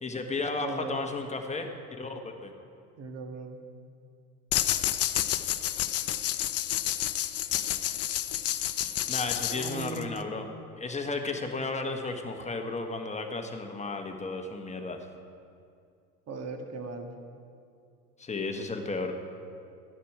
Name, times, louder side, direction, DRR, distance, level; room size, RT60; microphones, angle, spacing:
voice 1, 0.0-2.5 9.1-10.5 10.8-15.0 18.2-19.2, left 3 dB, 15° left, 4 dB, 1.4 m, -34 dB
voice 2, 0.6-1.0 3.0-3.6 9.5-10.2 16.3-17.1, right 4 dB, 35° right, 4 dB, 1.7 m, -38 dB
sound 1, 4.5-10.2, left 12 dB, 35° left, 0.6 m, -30 dB
14.0 x 10.0 x 4.9 m, 2.4 s
hypercardioid pair, 75°, 45 cm